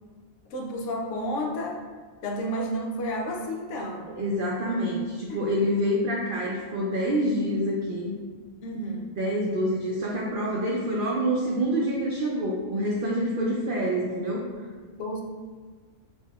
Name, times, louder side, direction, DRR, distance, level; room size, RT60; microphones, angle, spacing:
voice 1, 0.5-1.8 2.2-4.1 5.3-5.5 8.6-9.1 14.9-15.2, equal, 70° left, 1 dB, 0.8 m, -31 dB
voice 2, 4.1-8.1 9.2-14.5, equal, 90° right, -3 dB, 0.4 m, -27 dB
6.1 x 2.7 x 2.3 m, 1.5 s
omnidirectional pair, 1.5 m